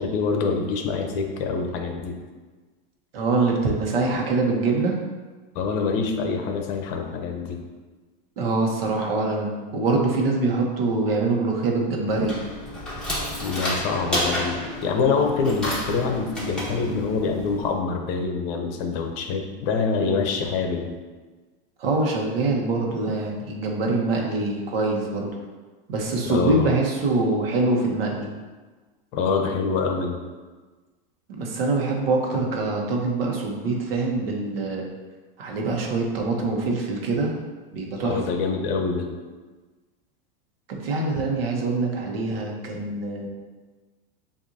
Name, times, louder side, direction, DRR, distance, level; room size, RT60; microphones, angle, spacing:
voice 1, 0.0-2.2 5.5-7.6 13.4-20.9 26.3-26.7 29.1-30.2 38.0-39.1, left 4 dB, 50° left, 4 dB, 0.7 m, -25 dB
voice 2, 3.1-4.9 8.4-12.3 21.8-25.3 25.9-28.3 31.4-34.9 35.4-37.3 37.7-38.2 40.7-43.3, right 3 dB, 85° right, 0 dB, 1.1 m, -24 dB
sound 1, 12.1-17.7, equal, ahead, 1.4 m, -31 dB
7.3 x 2.7 x 2.7 m, 1.3 s
supercardioid pair, 140°, 29 cm